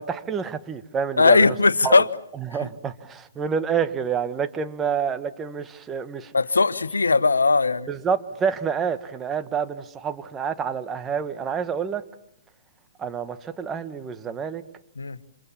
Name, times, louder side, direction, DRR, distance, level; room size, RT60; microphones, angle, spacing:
voice 1, 0.0-1.5 1.8-2.0 2.4-6.3 7.9-12.0 13.0-14.6, right 6 dB, 15° right, 1.5 m, -28 dB
voice 2, 1.2-2.1 6.3-7.9 15.0-15.2, left 3 dB, 90° left, 1.2 m, -18 dB
29.0 x 27.0 x 7.3 m
hypercardioid pair, 135°, 0 cm